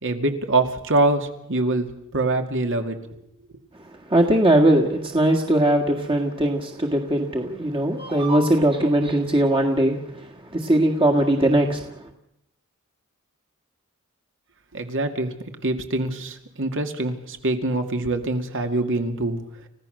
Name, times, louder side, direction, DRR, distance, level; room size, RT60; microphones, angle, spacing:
voice 1, 0.0-3.0 14.7-15.3 15.6-19.4, right 2 dB, 60° right, 5 dB, 2.3 m, -24 dB
voice 2, 4.1-10.0 10.6-11.8, right 1 dB, 25° right, 1 dB, 1.8 m, -20 dB
30.0 x 16.0 x 6.6 m, 0.80 s
head